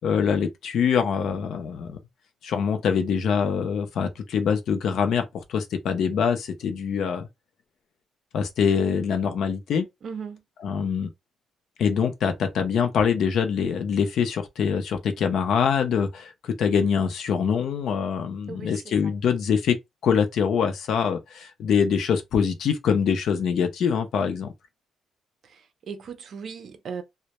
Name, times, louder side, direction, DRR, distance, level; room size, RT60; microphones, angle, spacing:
voice 1, 0.0-2.0 2.4-7.3 8.3-9.9 10.6-11.1 11.8-19.8 20.0-24.5, left 7 dB, 60° left, 0.5 m, -24 dB
voice 2, 10.0-10.4 18.5-19.1 25.5-25.6 25.9-27.0, right 6 dB, 45° right, 0.5 m, -37 dB
2.1 x 2.1 x 2.8 m
cardioid pair, 170°, 0 cm